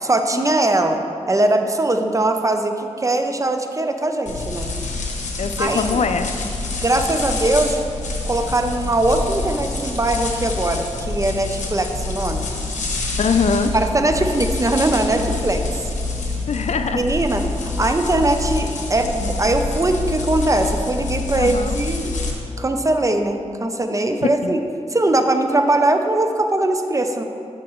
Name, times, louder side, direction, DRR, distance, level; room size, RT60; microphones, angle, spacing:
voice 1, 0.0-1.0 1.3-4.7 5.6-6.1 6.8-7.8 8.2-12.5 13.7-15.6 16.9-17.4 17.8-22.1 22.6-24.6 24.9-27.2, right 2 dB, 25° right, 6 dB, 0.6 m, -20 dB
sound 1, 4.3-22.3, left 3 dB, 90° left, 1.0 m, -27 dB
voice 2, 5.4-6.5 13.2-13.7 16.5-17.0 21.4-21.8 24.4-24.6, left 5 dB, 65° left, 8 dB, 0.4 m, -22 dB
12.0 x 5.8 x 3.1 m, 2.7 s
wide cardioid pair, 75°, 12 cm